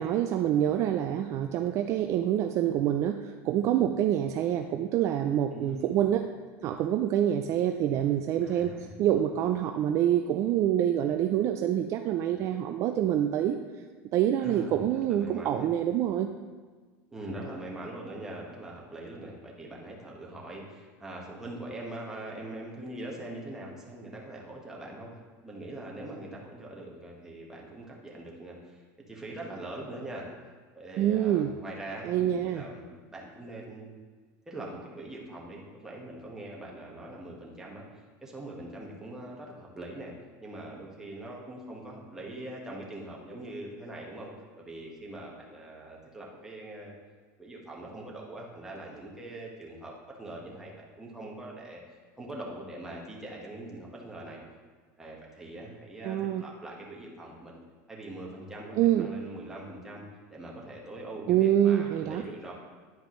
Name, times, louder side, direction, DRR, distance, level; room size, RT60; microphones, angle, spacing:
voice 1, 0.0-6.2 6.6-13.6 14.1-16.3 31.0-31.5 32.0-32.6 56.0-56.5 58.8-59.1 61.3-62.2, right 11 dB, 40° right, 6 dB, 0.3 m, -26 dB
voice 2, 5.5-5.9 8.4-8.9 14.4-15.7 17.1-25.2 25.4-28.8 29.1-30.3 30.7-33.9 34.5-40.1 40.4-44.3 44.5-46.9 47.4-49.9 50.2-51.8 52.2-54.4 55.0-57.6 57.9-60.0 60.3-62.5, right 1 dB, 5° right, -3 dB, 1.4 m, -42 dB
10.0 x 5.1 x 3.1 m, 1.5 s
supercardioid pair, 145°, 7 cm